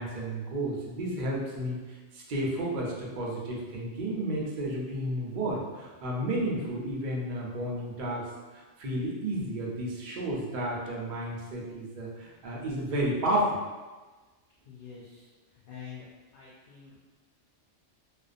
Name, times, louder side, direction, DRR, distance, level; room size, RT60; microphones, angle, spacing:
voice 1, 0.0-8.2 8.5-13.6, right 1 dB, 55° right, -3 dB, 0.5 m, -32 dB
voice 2, 14.7-16.1 16.3-17.0, left 7 dB, 65° left, -7 dB, 0.5 m, -47 dB
2.5 x 2.2 x 2.5 m, 1.3 s
omnidirectional pair, 1.3 m